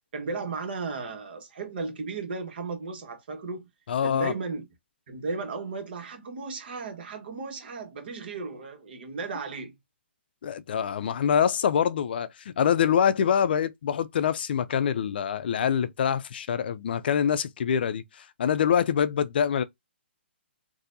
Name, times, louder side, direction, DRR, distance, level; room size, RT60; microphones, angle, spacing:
voice 1, 0.1-3.7 4.0-4.6 5.1-9.7, right 4 dB, 55° right, 1.4 m, -35 dB
voice 2, 3.9-4.3 10.4-19.6, left 8 dB, 55° left, 0.4 m, -25 dB
4.1 x 2.6 x 2.6 m
hypercardioid pair, 150°, 6 cm